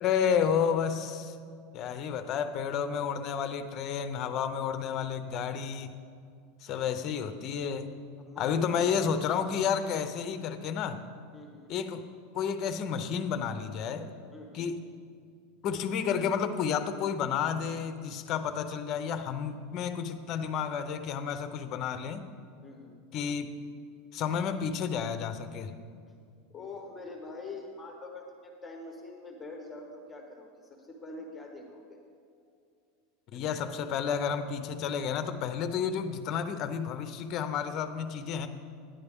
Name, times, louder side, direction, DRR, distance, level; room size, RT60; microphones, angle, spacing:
voice 1, 0.0-1.4 1.7-6.0 6.6-7.9 8.4-11.0 11.7-12.0 12.3-14.1 14.5-14.8 15.6-22.2 23.1-23.5 24.1-25.7 33.3-38.5, left 7 dB, 35° left, 9 dB, 0.6 m, -31 dB
voice 2, 8.2-8.8 11.3-11.7 14.3-14.6 22.6-23.0 26.5-32.0, left 3 dB, 10° left, 1 dB, 1.0 m, -45 dB
11.0 x 10.5 x 3.5 m, 2.3 s
supercardioid pair, 165°, 0 cm